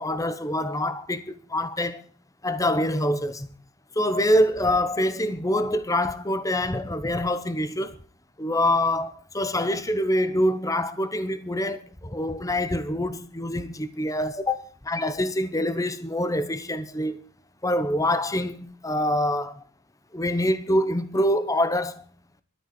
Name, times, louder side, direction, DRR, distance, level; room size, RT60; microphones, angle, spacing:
voice 1, 0.0-2.0 2.4-3.5 3.9-8.0 8.4-17.2 17.6-19.6 20.1-22.0, left 1 dB, 15° left, 0.9 m, -25 dB
12.5 x 10.0 x 8.4 m
head